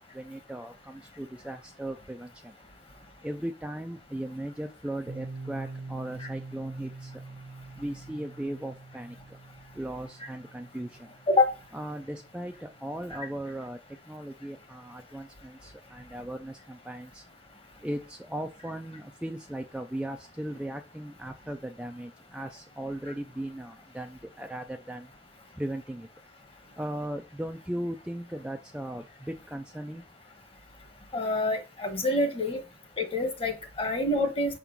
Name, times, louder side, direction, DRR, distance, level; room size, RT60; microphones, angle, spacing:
voice 1, 0.0-2.6 3.2-7.2 7.8-9.4 9.7-11.1 11.7-17.3 17.8-25.1 25.5-26.1 26.8-30.0, right 1 dB, 5° right, 0.4 m, -37 dB
Piano, 5.1-12.5, right 3 dB, 60° right, 1.0 m, -44 dB
voice 2, 31.1-32.6 33.0-34.6, left 2 dB, 30° left, 1.2 m, -27 dB
5.9 x 3.7 x 5.8 m
head